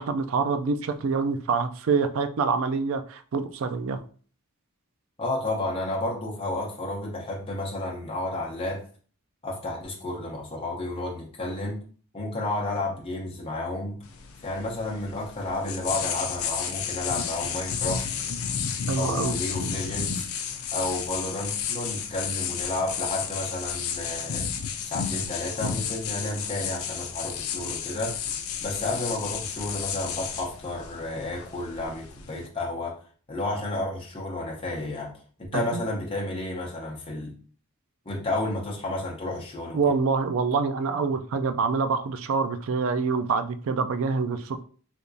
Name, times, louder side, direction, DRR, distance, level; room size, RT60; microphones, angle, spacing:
voice 1, 0.0-4.0 18.9-19.3 35.5-35.8 39.7-44.6, right 5 dB, 65° right, 0.3 m, -26 dB
voice 2, 5.2-8.8 9.4-11.8 12.1-14.0 14.4-18.1 18.9-20.3 20.7-24.5 24.8-28.2 28.6-33.0 33.3-35.1 35.4-37.3 38.1-39.9, left 2 dB, 25° left, 0.8 m, -31 dB
sound 1, 14.0-32.5, left 7 dB, 75° left, 0.5 m, -32 dB
3.4 x 2.9 x 2.6 m
head